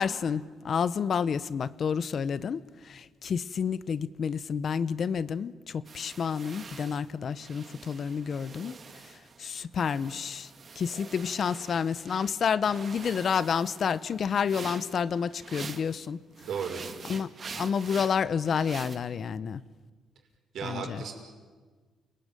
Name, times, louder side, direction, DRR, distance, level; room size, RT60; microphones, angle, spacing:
voice 1, 0.0-8.8 9.1-10.5 10.8-16.2 17.1-17.3 17.5-19.6 20.6-21.0, left 6 dB, 55° left, 17 dB, 0.9 m, -29 dB
sound 1, 5.8-9.4 9.7-12.3 12.7-16.0 16.3-19.0, right 5 dB, 45° right, 2.0 m, -45 dB
voice 2, 16.4-16.8 20.5-21.1, right 6 dB, 70° right, 3 dB, 5.6 m, -34 dB
29.0 x 21.0 x 9.1 m, 1.5 s
cardioid pair, 90°, 0 cm